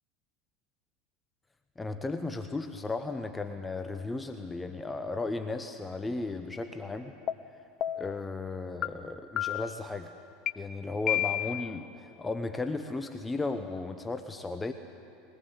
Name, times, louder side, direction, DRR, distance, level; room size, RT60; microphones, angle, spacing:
voice 1, 1.8-7.2 8.0-10.1 10.6-14.7, left 3 dB, 15° left, 7 dB, 1.0 m, -35 dB
sound 1, 7.3-7.4 7.8-8.2 8.8-8.9 9.4-9.8 10.5-10.6 11.1-11.7, left 12 dB, 45° left, 0.7 m, -30 dB
22.0 x 18.5 x 8.2 m, 2.6 s
hypercardioid pair, 90°, 0 cm